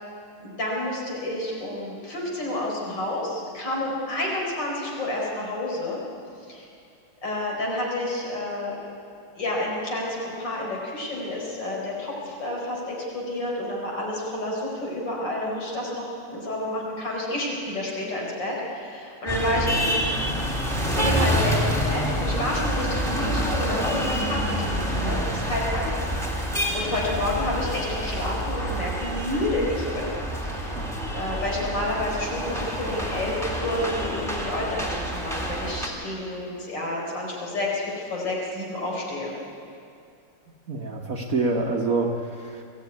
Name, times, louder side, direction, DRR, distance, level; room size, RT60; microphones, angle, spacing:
voice 1, 0.4-6.0 6.5-6.7 7.2-8.8 9.4-20.1 20.9-26.0 26.2-30.1 30.4-30.8 31.1-39.3, left 1 dB, 55° left, -3 dB, 5.2 m, -30 dB
sound 1, 19.3-35.9, equal, ahead, 3.0 m, -27 dB
voice 2, 40.7-42.6, right 3 dB, 45° right, 1 dB, 1.5 m, -27 dB
22.0 x 15.5 x 9.5 m, 2.4 s
omnidirectional pair, 2.3 m